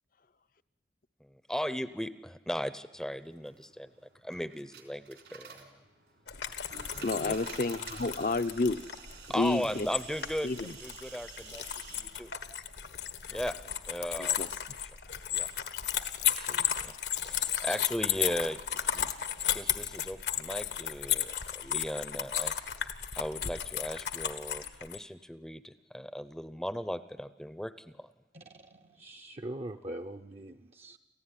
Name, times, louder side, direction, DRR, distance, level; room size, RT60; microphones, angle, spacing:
voice 1, 1.5-3.9 4.2-5.6 6.9-7.3 9.3-12.3 13.3-13.6 13.9-14.4 15.3-15.5 16.2-16.9 17.2-18.6 18.9-19.1 19.4-22.5 23.2-27.7 28.0-28.1, equal, 5° left, 13 dB, 0.7 m, -37 dB
sound 1, 3.3-12.0, right 6 dB, 80° right, 3.9 m, -50 dB
sound 2, 6.3-25.0, left 10 dB, 80° left, 1.5 m, -34 dB
voice 2, 7.0-8.8 9.3-9.9 10.4-10.8 14.2-14.5, left 3 dB, 50° left, 11 dB, 0.7 m, -30 dB
voice 3, 28.3-31.0, right 1 dB, 35° right, 4 dB, 0.7 m, -42 dB
28.5 x 15.5 x 9.9 m, 1.2 s
head